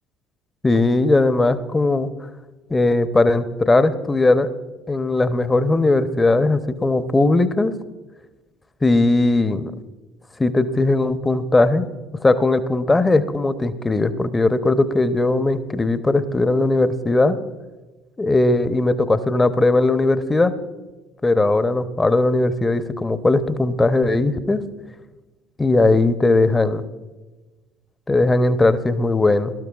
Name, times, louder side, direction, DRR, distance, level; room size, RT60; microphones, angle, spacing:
voice 1, 0.6-2.1 2.7-4.5 4.9-7.7 8.8-9.8 10.4-11.9 12.2-17.4 18.2-20.5 21.2-24.6 25.6-26.8 28.1-29.5, left 2 dB, 20° left, 12 dB, 0.8 m, -18 dB
18.5 x 12.5 x 2.4 m, 1.2 s
hypercardioid pair, 60°, 0 cm